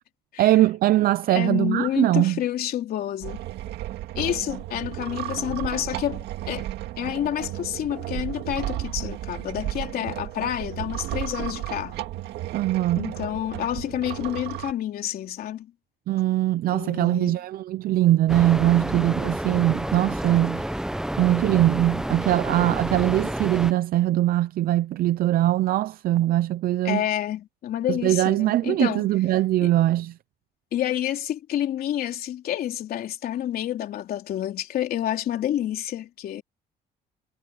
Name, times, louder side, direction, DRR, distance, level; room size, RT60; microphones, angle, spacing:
voice 1, 0.4-2.4 12.5-13.1 16.1-20.7 21.2-27.0 27.9-30.1, right 14 dB, 60° right, 0.6 m, -21 dB
voice 2, 1.3-3.4 4.1-6.7 7.0-12.0 13.0-15.7 16.7-17.4 26.8-29.1 29.6-29.7 30.7-36.4, left 11 dB, 65° left, 3.5 m, -29 dB
sound 1, 3.2-14.7, right 14 dB, 80° right, 2.0 m, -33 dB
sound 2, 18.3-23.7, right 1 dB, 5° right, 0.7 m, -29 dB
cardioid pair, 110°, 17 cm